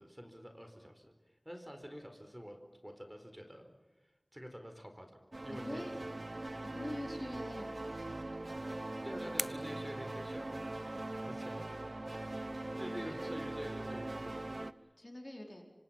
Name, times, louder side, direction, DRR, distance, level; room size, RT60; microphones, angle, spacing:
voice 1, 0.0-2.6 2.8-6.1 9.0-10.9 11.3-11.7 12.8-14.6, equal, 10° right, 5 dB, 4.4 m, -48 dB
sound 1, 5.3-14.7, right 2 dB, 60° right, 1.0 m, -41 dB
voice 2, 5.5-5.9 6.6-7.8 12.8-13.1 15.0-15.7, left 1 dB, 40° left, 2 dB, 4.6 m, -44 dB
sound 2, 8.3-11.0, left 2 dB, 70° left, 0.7 m, -46 dB
27.0 x 25.5 x 5.9 m, 1.2 s
wide cardioid pair, 45°, 0 cm